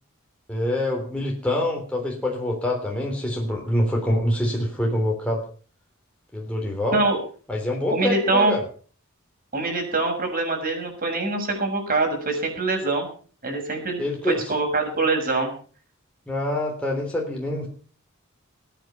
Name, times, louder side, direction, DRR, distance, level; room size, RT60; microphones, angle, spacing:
voice 1, 0.5-5.4 6.3-7.0 7.5-8.6 14.0-14.5 16.3-17.7, left 1 dB, 5° left, -1 dB, 3.4 m, -25 dB
voice 2, 7.9-8.5 9.5-13.1 13.4-15.5, right 3 dB, 45° right, 3 dB, 6.8 m, -24 dB
21.5 x 9.2 x 5.9 m, 0.42 s
head